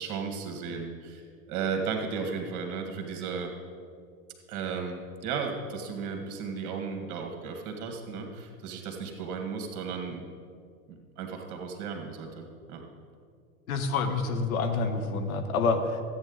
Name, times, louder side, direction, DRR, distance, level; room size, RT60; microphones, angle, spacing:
voice 1, 0.0-3.5 4.5-10.2 10.9-12.8, right 5 dB, 40° right, 3 dB, 1.9 m, -35 dB
voice 2, 13.7-16.0, left 4 dB, 70° left, 6 dB, 1.2 m, -27 dB
13.5 x 8.8 x 4.0 m, 2.2 s
figure-of-eight pair, 90°, 44 cm